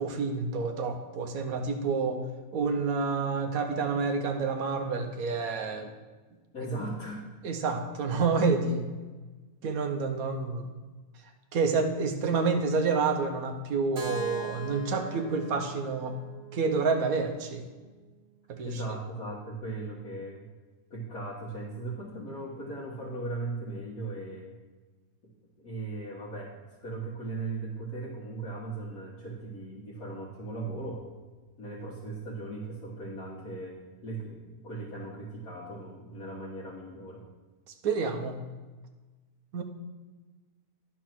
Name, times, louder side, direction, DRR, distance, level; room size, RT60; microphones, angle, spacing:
voice 1, 0.0-2.2 2.5-5.9 7.4-8.9 9.6-10.7 11.5-16.2 16.5-17.6 18.5-18.8 37.8-38.4 39.5-39.6, right 4 dB, 70° right, 5 dB, 1.3 m, -28 dB
voice 2, 6.5-7.2 18.6-20.5 20.9-24.5 25.2-25.3 25.6-31.2 31.6-37.2, right 2 dB, 70° left, -8 dB, 2.0 m, -38 dB
Keyboard (musical), 14.0-17.9, right 5 dB, 45° right, 1.0 m, -41 dB
10.5 x 4.5 x 6.0 m, 1.3 s
omnidirectional pair, 1.6 m